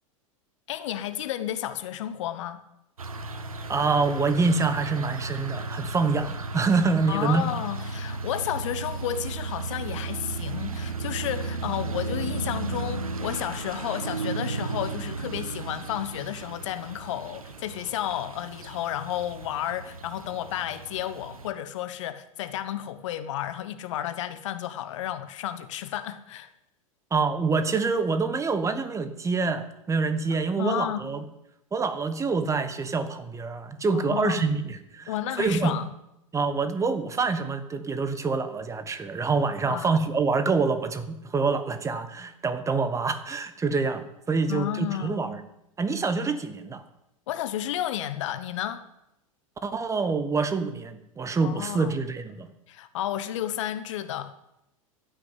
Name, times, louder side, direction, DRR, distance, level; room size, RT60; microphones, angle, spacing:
voice 1, 0.7-2.6 7.1-26.5 30.6-31.1 33.9-34.4 35.1-35.9 39.7-39.9 44.5-45.2 47.3-48.8 51.4-51.9 52.7-54.3, left 11 dB, 60° left, 1.1 m, -32 dB
sound 1, 3.0-21.5, right 3 dB, 80° right, 1.4 m, -34 dB
voice 2, 3.7-7.5 27.1-31.2 31.7-35.8 36.3-45.4 45.8-46.8 49.6-52.5, right 4 dB, 15° right, 1.3 m, -26 dB
14.5 x 6.4 x 9.3 m
figure-of-eight pair, 95°, 18 cm